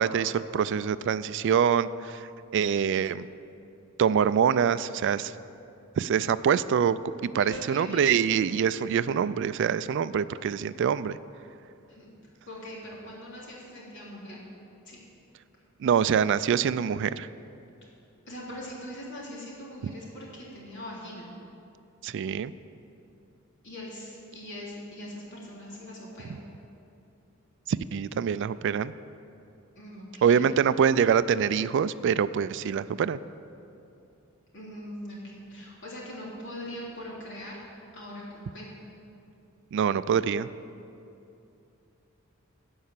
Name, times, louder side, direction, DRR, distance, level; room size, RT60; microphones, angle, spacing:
voice 1, 0.0-3.3 4.0-5.3 6.0-11.2 15.8-17.3 22.0-22.5 27.7-28.9 30.2-33.2 39.7-40.5, right 7 dB, 60° right, 15 dB, 0.3 m, -25 dB
voice 2, 7.4-8.3 11.9-12.1 12.5-14.4 14.8-15.0 18.2-21.3 23.6-26.4 29.7-30.4 34.5-37.6 37.9-38.8, equal, 60° left, -5 dB, 3.3 m, -41 dB
16.0 x 5.5 x 7.4 m, 2.7 s
head